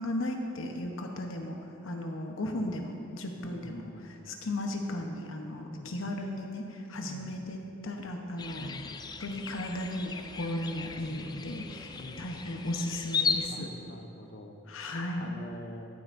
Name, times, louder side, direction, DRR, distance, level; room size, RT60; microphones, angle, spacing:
voice 1, 0.0-1.6 1.8-7.6 7.8-8.7 9.2-13.7 14.7-15.3, left 1 dB, 80° left, 3 dB, 1.0 m, -35 dB
voice 2, 3.4-4.4 5.6-6.0 7.0-7.3 8.6-9.0 11.1-11.5 12.0-12.3 13.5-14.5 15.2-15.9, left 1 dB, 50° left, 4 dB, 0.8 m, -46 dB
sound 1, 8.4-13.5, left 5 dB, 20° left, 0.3 m, -36 dB
13.5 x 8.1 x 2.6 m, 2.6 s
head